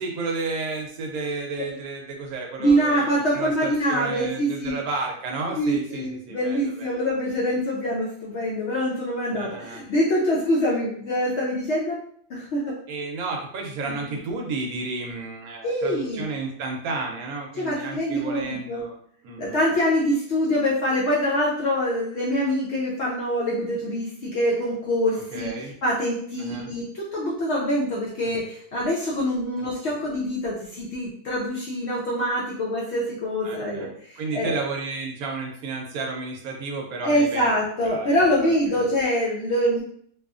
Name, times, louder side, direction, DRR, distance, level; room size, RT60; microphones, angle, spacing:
voice 1, 0.0-7.0 9.3-9.8 12.9-19.0 19.2-19.6 25.1-25.7 26.4-26.7 28.2-28.4 29.6-30.0 33.4-33.9 34.2-37.5 37.8-38.2 38.4-38.8, right 3 dB, 75° right, 1 dB, 1.0 m, -32 dB
voice 2, 2.6-4.8 5.6-12.0 12.3-12.7 13.8-14.2 15.6-16.3 17.6-18.9 19.4-34.6 37.0-39.8, equal, 65° left, -5 dB, 0.7 m, -25 dB
2.8 x 2.3 x 2.4 m, 0.63 s
omnidirectional pair, 1.6 m